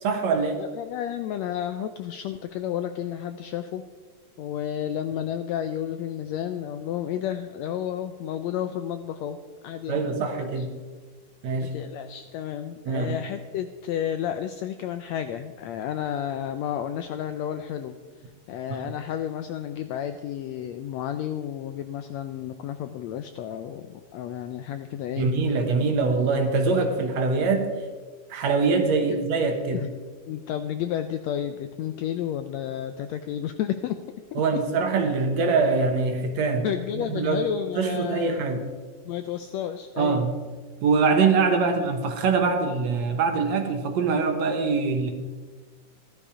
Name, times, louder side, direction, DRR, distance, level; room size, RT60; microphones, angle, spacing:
voice 1, 0.0-0.6 9.9-10.7 11.4-11.7 12.9-13.2 18.7-18.9 25.2-27.8 28.3-29.8 34.4-36.7 36.9-37.4 37.8-38.6 40.0-40.3 40.8-45.1, right 4 dB, 65° right, 5 dB, 2.2 m, -23 dB
voice 2, 0.6-3.8 4.4-9.4 9.6-10.1 10.6-10.7 11.6-18.0 18.5-25.3 29.1-29.3 29.7-29.9 30.3-34.4 36.6-38.5 39.0-40.3, left 10 dB, 80° left, 9 dB, 1.5 m, -31 dB
14.5 x 12.0 x 4.9 m, 1.4 s
omnidirectional pair, 3.7 m